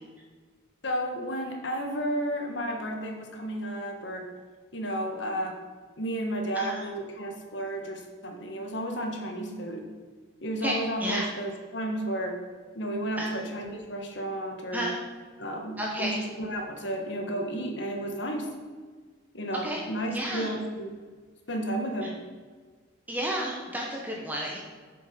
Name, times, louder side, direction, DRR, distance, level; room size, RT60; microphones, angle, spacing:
voice 1, 0.8-4.3 4.7-5.6 6.0-9.8 10.4-12.4 12.7-14.9 15.4-18.5 19.3-20.9 21.5-22.2, right 1 dB, 65° left, 3 dB, 1.4 m, -32 dB
voice 2, 10.6-11.3 13.2-13.4 14.7-15.0 15.8-16.2 19.6-19.8 20.1-20.5 22.0-22.1 23.1-24.6, equal, 10° right, -2 dB, 1.0 m, -32 dB
7.7 x 6.6 x 5.2 m, 1.5 s
head